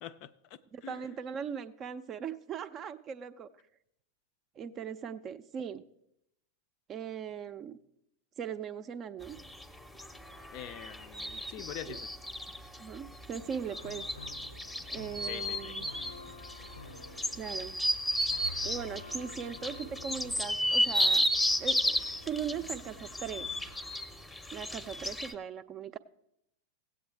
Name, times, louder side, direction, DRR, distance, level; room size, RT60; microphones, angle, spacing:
voice 1, 0.0-1.2 10.5-12.1 15.2-15.7, left 11 dB, 45° left, 0.5 m, -45 dB
voice 2, 0.7-3.5 4.6-5.8 6.9-7.8 8.4-9.4 11.9-12.0 12.8-14.1 14.9-15.9 17.3-17.8 18.6-21.3 21.6-23.5 24.5-26.0, right 7 dB, 30° right, 0.5 m, -39 dB
sound 1, 9.2-25.3, equal, 5° left, 0.8 m, -33 dB
sound 2, 13.6-23.8, left 3 dB, 75° left, 0.7 m, -49 dB
16.5 x 8.5 x 3.4 m
figure-of-eight pair, 90°, 0 cm